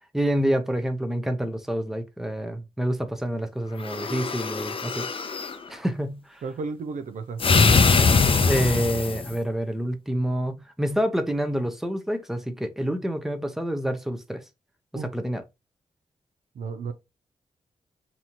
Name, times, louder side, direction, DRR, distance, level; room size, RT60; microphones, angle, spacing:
voice 1, 0.1-5.1 5.7-6.4 8.5-14.4 14.9-15.4, equal, 5° right, 0.7 m, -27 dB
sound 1, 3.8-5.6 7.4-9.3, left 4 dB, 45° left, 0.6 m, -22 dB
voice 2, 6.4-7.7 14.9-15.1 16.5-16.9, right 4 dB, 75° right, 0.5 m, -33 dB
4.1 x 2.7 x 2.9 m
cardioid pair, 55°, 13 cm